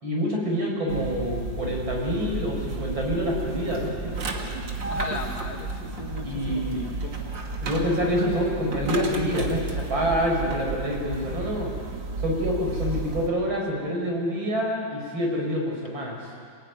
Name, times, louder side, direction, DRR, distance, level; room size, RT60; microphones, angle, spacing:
voice 1, 0.0-4.1 6.2-6.8 7.6-11.7 12.2-16.3, equal, 85° right, -1 dB, 6.6 m, -27 dB
sound 1, 0.9-13.3, right 3 dB, 70° right, 2.9 m, -32 dB
voice 2, 4.8-7.2, left 3 dB, 55° left, 2 dB, 2.8 m, -37 dB
27.5 x 18.5 x 9.6 m, 2.2 s
omnidirectional pair, 2.1 m